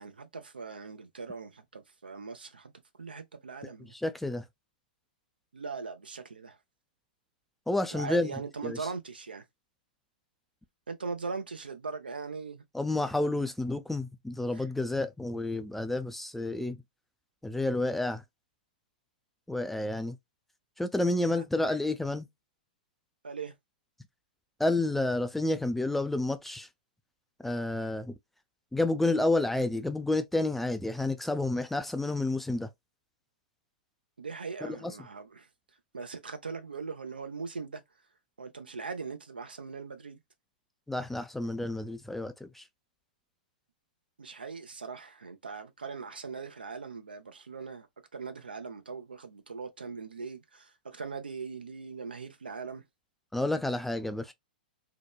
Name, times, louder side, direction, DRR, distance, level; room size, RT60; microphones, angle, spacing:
voice 1, 0.0-2.7 3.0-3.9 5.5-6.6 7.9-9.4 10.9-12.6 14.5-14.7 21.3-21.8 23.2-23.5 34.2-35.5 35.9-37.8 38.4-40.2 44.2-47.9 48.1-52.8, right 4 dB, 85° right, 0.6 m, -40 dB
voice 2, 3.6-4.4 7.7-8.3 8.6-8.8 12.7-16.8 17.4-18.2 19.5-20.2 20.8-22.3 24.6-26.7 27.4-28.1 28.7-32.7 34.6-34.9 40.9-42.6 53.3-54.3, left 2 dB, 5° left, 0.3 m, -30 dB
2.9 x 2.1 x 2.2 m
hypercardioid pair, 110°, 5 cm